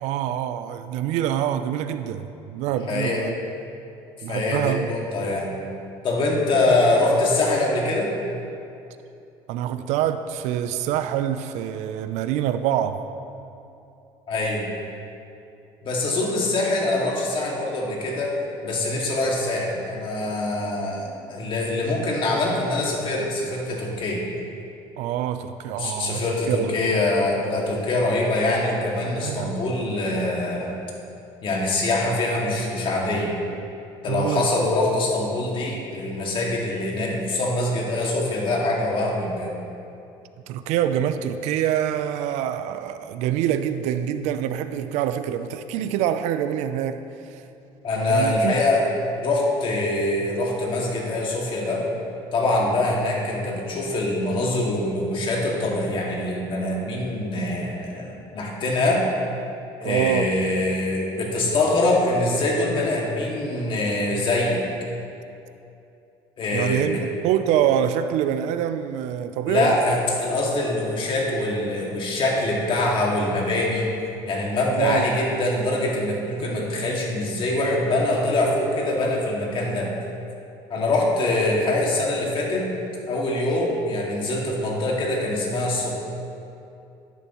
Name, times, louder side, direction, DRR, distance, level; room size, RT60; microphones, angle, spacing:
voice 1, 0.0-3.3 4.2-4.9 9.5-13.0 25.0-26.7 29.2-29.6 34.1-34.5 40.5-47.0 48.1-48.5 59.8-60.3 66.5-69.8 74.8-75.1, right 10 dB, 75° right, 10 dB, 0.5 m, -25 dB
voice 2, 2.9-3.2 4.3-5.5 6.0-8.1 14.3-14.6 15.8-18.4 18.6-24.2 25.8-30.7 31.4-33.4 34.0-39.5 47.8-48.9 49.2-51.9 52.3-59.0 59.8-64.6 66.4-67.0 69.5-73.9 74.3-79.9 80.7-82.7 83.1-85.9, left 2 dB, 45° left, -2 dB, 2.1 m, -24 dB
10.5 x 10.0 x 3.0 m, 2.7 s
supercardioid pair, 100°, 12 cm